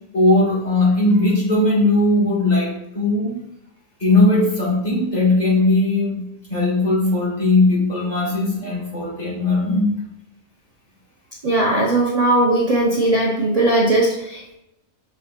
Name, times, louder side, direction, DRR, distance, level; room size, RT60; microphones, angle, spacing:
voice 1, 0.1-3.3 4.0-6.2 6.5-9.9, left 2 dB, 30° left, -6 dB, 2.5 m, -18 dB
voice 2, 11.4-14.5, right 2 dB, 35° right, -1 dB, 0.6 m, -18 dB
6.1 x 4.0 x 4.3 m, 0.83 s
omnidirectional pair, 1.5 m